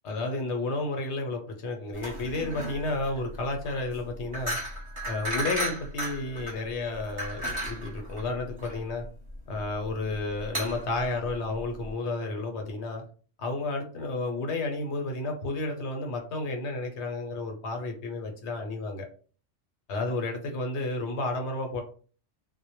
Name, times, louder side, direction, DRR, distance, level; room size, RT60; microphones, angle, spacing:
voice 1, 0.0-4.6 5.1-9.0 9.5-13.0 13.4-19.1 19.9-21.8, left 2 dB, 70° left, 3 dB, 0.9 m, -32 dB
sound 1, 1.9-11.9, equal, 30° right, 0.8 m, -35 dB
2.1 x 2.1 x 2.8 m, 0.39 s
omnidirectional pair, 1.3 m